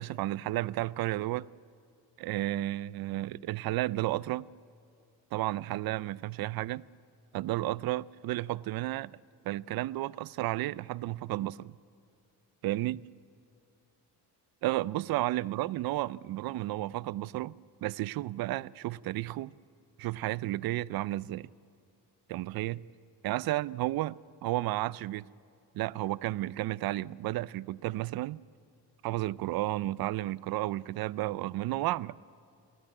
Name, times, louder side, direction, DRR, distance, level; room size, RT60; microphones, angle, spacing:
voice 1, 0.0-1.5 2.2-4.5 5.3-6.8 7.3-9.1 9.4-11.7 12.6-13.0 14.6-17.5 17.8-19.5 20.0-21.5 22.3-22.8 23.2-25.3 25.7-28.4 29.0-32.2, right 16 dB, 60° right, 0.5 m, -32 dB
29.5 x 13.0 x 9.9 m
cardioid pair, 135°, 41 cm